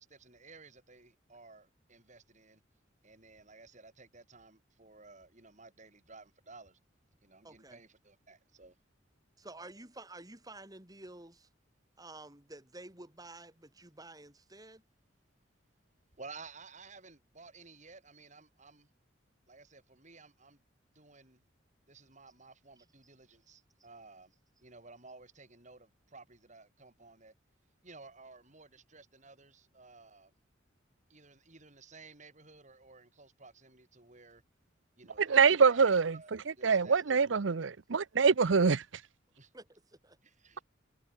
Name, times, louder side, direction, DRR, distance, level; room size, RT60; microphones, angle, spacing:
voice 1, 0.1-2.6 3.0-6.8 7.2-8.8 16.2-18.9 19.5-20.6 21.0-21.4 21.9-27.3 27.8-30.3 31.1-34.4 35.0-36.3 36.6-37.0 39.4-39.5 40.2-40.6, right 3 dB, 40° right, 5.7 m, -55 dB
voice 2, 7.4-7.8 9.4-11.5 12.0-14.8 39.5-40.2, right 2 dB, 20° right, 3.4 m, -50 dB
voice 3, 35.2-36.2 36.6-38.8, right 5 dB, 75° right, 0.7 m, -25 dB
head